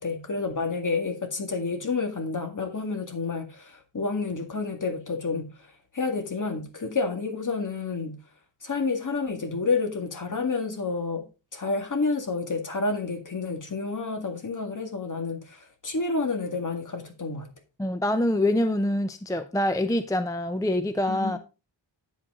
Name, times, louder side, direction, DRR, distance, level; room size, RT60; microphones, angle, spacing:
voice 1, 0.0-5.7 5.9-8.2 8.6-11.3 11.5-17.5 21.1-21.4, left 4 dB, 40° left, 2.0 m, -29 dB
voice 2, 17.8-21.4, left 1 dB, 10° left, 0.5 m, -25 dB
8.9 x 8.0 x 3.7 m
wide cardioid pair, 140°, 45 cm